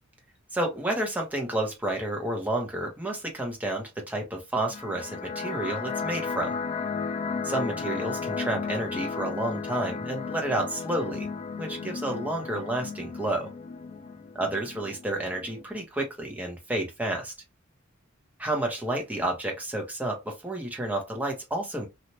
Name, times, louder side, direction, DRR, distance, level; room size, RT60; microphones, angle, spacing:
voice 1, 0.5-6.5 7.4-11.3 11.6-13.5 14.3-17.3 18.4-21.9, right 1 dB, 10° right, 0.9 m, -30 dB
sound 1, 4.7-15.6, left 5 dB, 30° left, 0.4 m, -34 dB
3.1 x 2.4 x 2.8 m
head